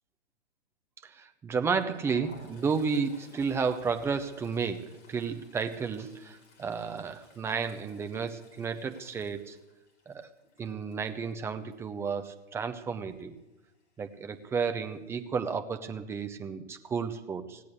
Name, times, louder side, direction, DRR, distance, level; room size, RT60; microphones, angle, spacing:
voice 1, 1.0-9.6 10.1-10.3 10.6-13.3 14.0-17.6, right 5 dB, 5° right, 7 dB, 0.6 m, -32 dB
Toilet flush, 1.6-12.4 12.7-12.9 13.2-13.4 14.3-14.9, left 1 dB, 30° left, 3.6 m, -57 dB
17.0 x 8.4 x 8.5 m, 1.0 s
figure-of-eight pair, 125°, 35 cm